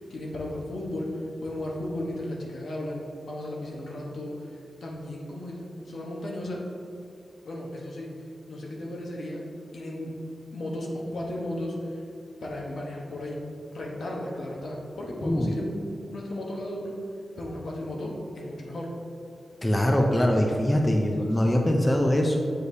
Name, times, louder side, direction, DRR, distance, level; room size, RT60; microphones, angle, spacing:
voice 1, 0.0-6.6 7.4-8.1 8.5-9.4 9.7-10.1 10.5-12.0 12.4-13.4 13.7-17.0 17.4-18.9, left 1 dB, 75° left, -2 dB, 1.1 m, -35 dB
voice 2, 15.2-15.5 19.6-22.4, equal, 15° left, 1 dB, 0.5 m, -23 dB
8.0 x 4.9 x 2.8 m, 2.4 s
wide cardioid pair, 125°, 0 cm